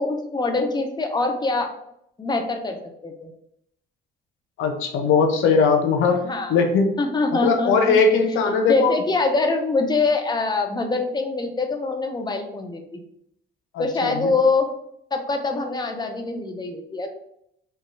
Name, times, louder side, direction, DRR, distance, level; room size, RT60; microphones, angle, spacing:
voice 1, 0.0-1.7 2.2-2.8 3.0-3.3 6.2-6.6 7.0-8.0 8.7-13.0 13.8-14.7 15.1-17.1, left 3 dB, 20° left, 4 dB, 0.6 m, -24 dB
voice 2, 4.6-6.2 6.5-6.9 7.3-8.9 13.7-14.3, left 5 dB, 85° left, 5 dB, 0.6 m, -19 dB
3.0 x 2.3 x 3.1 m, 0.75 s
cardioid pair, 90°, 20 cm